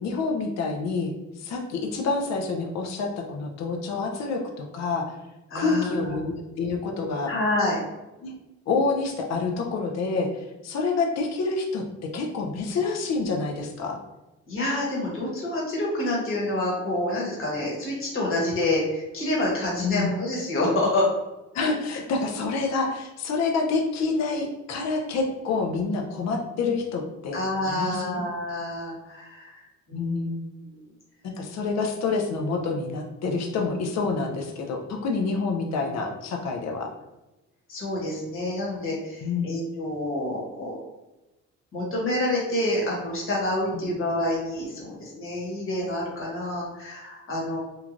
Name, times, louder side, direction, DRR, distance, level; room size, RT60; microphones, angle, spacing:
voice 1, 0.0-5.1 5.5-7.3 8.2-8.3 8.7-11.8 12.1-14.0 19.8-20.1 21.5-28.2 29.9-30.4 31.2-36.9 39.2-39.6 43.7-43.8, left 4 dB, 60° left, 2 dB, 0.5 m, -27 dB
voice 2, 5.5-6.2 7.3-7.8 14.5-21.1 27.3-29.6 29.9-30.3 30.7-30.8 37.7-40.8 41.7-47.6, left 1 dB, 45° left, -4 dB, 1.2 m, -28 dB
3.1 x 2.2 x 2.5 m, 1.0 s
cardioid pair, 90°, 30 cm